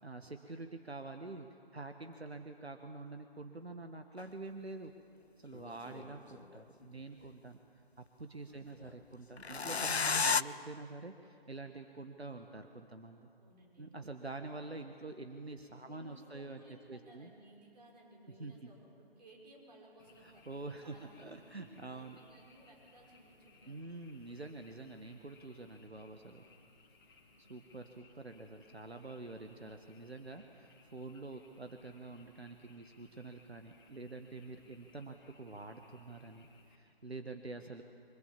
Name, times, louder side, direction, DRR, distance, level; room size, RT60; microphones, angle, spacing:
voice 1, 0.0-4.9 5.4-7.6 8.0-13.3 13.8-16.6 16.9-17.3 18.4-18.7 20.2-22.2 23.7-26.4 27.4-37.8, right 3 dB, 85° right, 6 dB, 1.5 m, -47 dB
sound 1, 4.2-4.3 5.5-6.6 9.4-10.4, left 5 dB, 90° left, 0.6 m, -32 dB
voice 2, 5.6-5.9 8.5-8.8 13.4-14.0 15.8-23.8 27.3-27.4, right 1 dB, 45° right, -1 dB, 5.9 m, -60 dB
Frog, 20.0-36.8, left 3 dB, 20° left, 2.2 m, -64 dB
24.5 x 23.0 x 7.5 m, 2.5 s
figure-of-eight pair, 150°, 31 cm